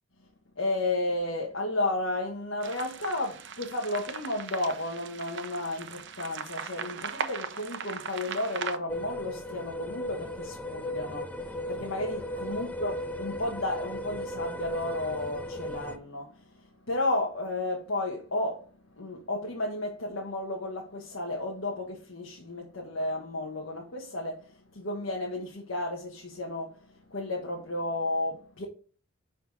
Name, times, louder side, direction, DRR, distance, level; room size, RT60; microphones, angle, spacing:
voice 1, 0.5-28.6, left 2 dB, 85° left, 1.3 m, -33 dB
sound 1, 2.6-8.8, right 6 dB, 60° right, 0.7 m, -38 dB
sound 2, 8.9-16.0, equal, 5° left, 0.5 m, -36 dB
6.0 x 4.1 x 5.3 m
head